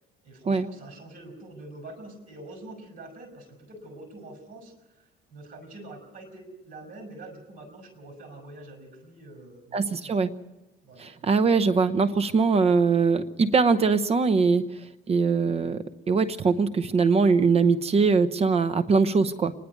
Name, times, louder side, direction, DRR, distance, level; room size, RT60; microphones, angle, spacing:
voice 1, 0.2-10.2 10.8-11.3 11.7-11.8, right 2 dB, 50° right, 4 dB, 5.3 m, -45 dB
voice 2, 9.7-10.3 11.0-14.6 15.1-19.5, right 4 dB, 35° right, 12 dB, 0.9 m, -22 dB
26.0 x 10.5 x 9.4 m, 1.0 s
cardioid pair, 110°, 17 cm